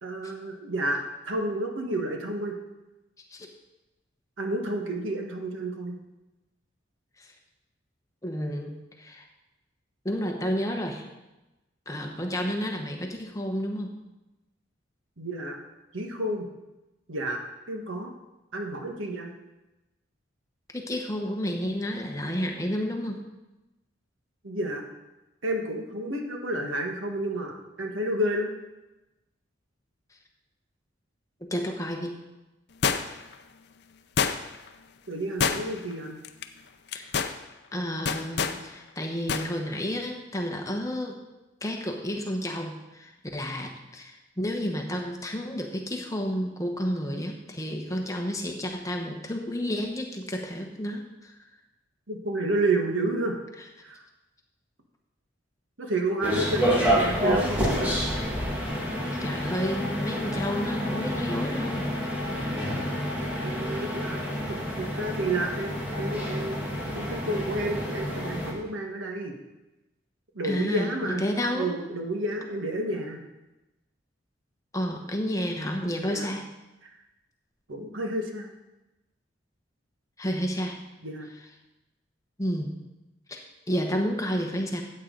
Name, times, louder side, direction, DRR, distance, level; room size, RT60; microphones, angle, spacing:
voice 1, 0.0-2.6 4.4-6.0 15.2-15.6 15.9-16.4 17.1-17.4 17.7-18.1 18.5-19.3 24.4-24.8 25.4-28.5 35.1-36.2 52.1-53.4 53.8-54.0 55.8-58.0 62.5-62.9 63.4-64.2 64.5-66.6 66.9-69.3 70.3-71.2 71.5-73.2 76.1-76.3 77.7-78.5 81.0-81.3, right 1 dB, 85° right, 2 dB, 1.5 m, -30 dB
voice 2, 8.2-9.2 10.0-11.1 11.9-14.0 20.7-23.2 31.4-32.1 36.9-37.1 37.7-41.2 41.6-51.3 59.2-61.9 70.4-71.7 74.7-76.4 80.2-80.8 82.4-82.8 83.3-84.8, equal, 15° left, 2 dB, 1.0 m, -31 dB
sound 1, 32.8-33.3 34.2-34.7 35.4-35.9 36.2-36.4 36.9-37.4 38.1-38.6 39.3-39.5 39.8-39.9, left 6 dB, 55° left, 0.5 m, -26 dB
sound 2, 56.2-68.5, equal, 10° right, 1.9 m, -29 dB
13.5 x 8.5 x 3.9 m, 1.0 s
head